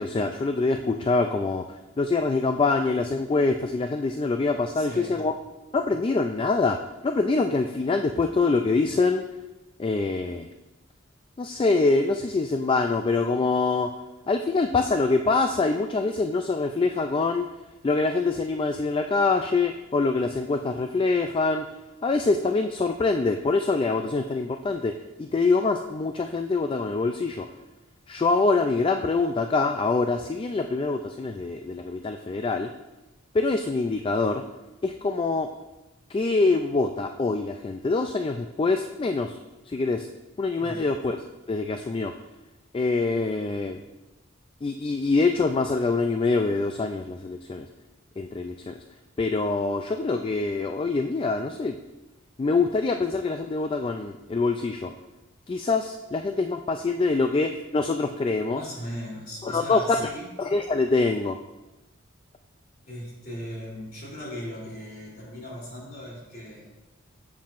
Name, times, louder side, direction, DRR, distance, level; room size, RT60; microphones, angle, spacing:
voice 1, 0.0-5.3 5.7-6.8 7.0-9.2 9.8-10.5 11.4-13.9 14.3-17.5 17.8-21.7 22.0-24.9 25.2-27.5 28.1-32.7 33.3-34.4 34.8-35.5 36.1-39.4 39.7-40.1 40.4-41.2 41.5-42.1 42.7-43.8 44.6-47.7 48.2-48.7 49.2-51.8 52.4-54.9 55.5-58.6 59.4-60.1 60.4-61.4, left 3 dB, 25° left, 6 dB, 0.3 m, -25 dB
voice 2, 4.7-5.2 40.6-40.9 58.5-60.3 62.9-66.7, equal, 45° left, -4 dB, 3.1 m, -38 dB
11.5 x 7.4 x 2.5 m, 1.0 s
head